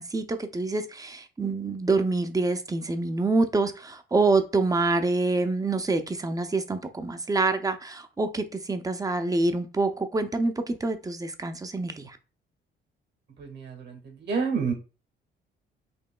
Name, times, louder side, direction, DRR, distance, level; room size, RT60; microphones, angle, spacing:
voice 1, 0.0-12.2, right 3 dB, 15° right, 0.6 m, -26 dB
voice 2, 13.4-14.7, right 5 dB, 60° right, 1.6 m, -29 dB
5.2 x 2.8 x 2.2 m
cardioid pair, 90°, 20 cm